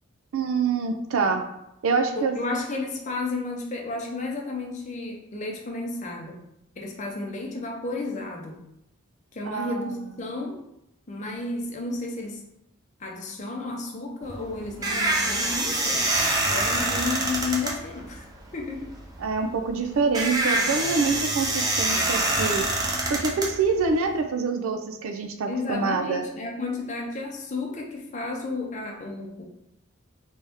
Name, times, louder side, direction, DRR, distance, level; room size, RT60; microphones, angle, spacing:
voice 1, 0.3-1.4 1.8-2.4 9.5-9.8 19.2-22.7 23.1-26.2, right 4 dB, 75° right, 6 dB, 0.4 m, -26 dB
voice 2, 2.2-6.4 6.8-8.6 9.3-10.6 11.1-12.4 13.0-16.1 16.5-18.3 18.5-18.9 25.5-29.4, left 3 dB, 35° left, 0 dB, 0.6 m, -32 dB
sound 1, 14.2-24.2, right 2 dB, 15° right, 0.4 m, -26 dB
3.4 x 2.7 x 3.4 m, 0.84 s
head